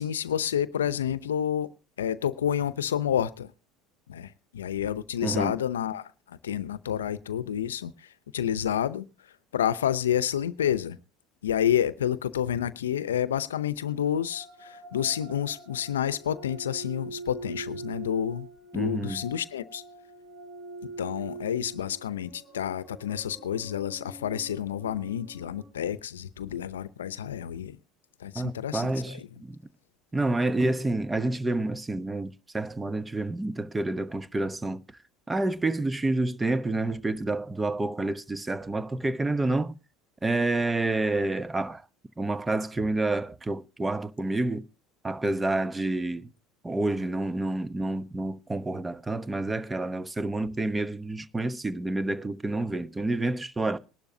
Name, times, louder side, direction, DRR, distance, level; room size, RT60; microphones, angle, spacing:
voice 1, 0.0-1.7 2.0-3.5 4.1-9.1 9.5-11.0 11.4-18.5 18.7-19.8 21.0-27.8 28.2-29.3, left 10 dB, 90° left, 0.7 m, -29 dB
voice 2, 5.2-5.5 18.7-19.2 28.3-29.6 30.1-34.8 35.3-39.7 40.2-41.8 42.2-44.7 45.0-46.3 46.6-53.8, right 2 dB, 15° right, 0.9 m, -28 dB
sound 1, 13.8-25.7, right 3 dB, 55° right, 7.2 m, -44 dB
21.5 x 11.5 x 2.7 m
hypercardioid pair, 80°, 0 cm